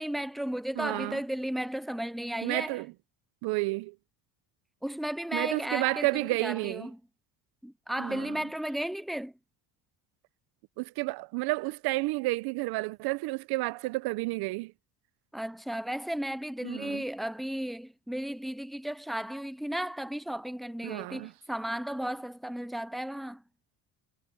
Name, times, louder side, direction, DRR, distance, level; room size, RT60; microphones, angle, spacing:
voice 1, 0.0-2.8 4.8-7.0 7.6-9.3 15.3-23.4, right 1 dB, ahead, 0.3 m, -34 dB
voice 2, 0.8-1.2 2.4-2.9 3.4-4.0 5.3-6.9 8.0-8.4 10.8-14.7 16.6-17.0 20.8-21.3, right 22 dB, 70° right, 0.7 m, -31 dB
cardioid pair, 150°, 39 cm